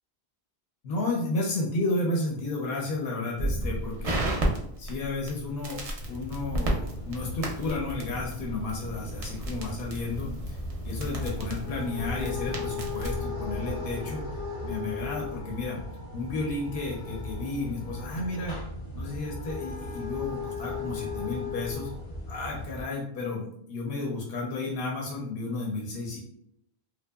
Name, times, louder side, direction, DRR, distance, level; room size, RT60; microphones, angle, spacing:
voice 1, 0.8-4.2 4.8-5.8 6.1-10.6 10.8-14.3 14.6-15.8 16.1-18.6 18.9-21.9 22.3-26.2, left 2 dB, 70° left, -1 dB, 0.8 m, -32 dB
Crackle, 3.4-13.2, right 1 dB, 50° right, 0.4 m, -33 dB
sound 1, 6.0-22.8, left 3 dB, 35° left, 0.7 m, -37 dB
2.7 x 2.1 x 2.2 m, 0.73 s
omnidirectional pair, 1.1 m